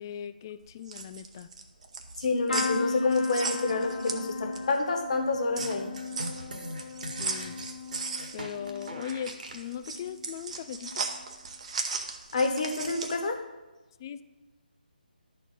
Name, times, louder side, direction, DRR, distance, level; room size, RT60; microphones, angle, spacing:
voice 1, 0.0-1.5 7.2-7.6 8.3-11.0 14.0-14.2, left 9 dB, 25° left, 13 dB, 0.3 m, -39 dB
sound 1, 0.7-4.8 5.2-13.3, right 4 dB, 45° right, 0.9 m, -37 dB
voice 2, 2.2-5.9 12.3-13.4, left 3 dB, 45° left, 4 dB, 1.3 m, -28 dB
sound 2, 2.5-10.3 10.8-11.3 12.6-12.8 13.0-13.1, left 3 dB, 75° left, 0.9 m, -37 dB
sound 3, 5.6-9.7, right 1 dB, 60° right, 1.5 m, -41 dB
11.5 x 4.5 x 5.3 m, 1.1 s
figure-of-eight pair, 155°, 5 cm